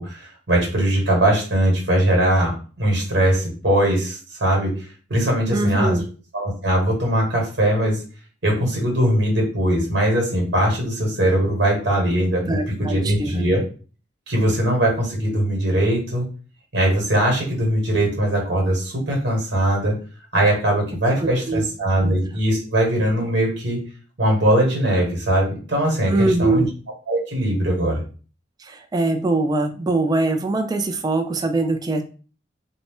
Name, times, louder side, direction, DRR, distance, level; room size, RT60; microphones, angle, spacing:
voice 1, 0.0-2.5 2.8-4.7 5.1-6.0 6.3-8.0 8.4-13.6 14.3-16.2 16.7-19.9 20.3-23.8 24.2-26.6 27.1-28.0, right 1 dB, 65° right, 0 dB, 1.3 m, -20 dB
voice 2, 5.5-6.0 12.4-13.5 21.2-21.6 22.0-22.2 26.1-26.7 28.6-32.0, right 2 dB, 20° right, 5 dB, 0.3 m, -22 dB
2.6 x 2.0 x 3.5 m, 0.38 s
head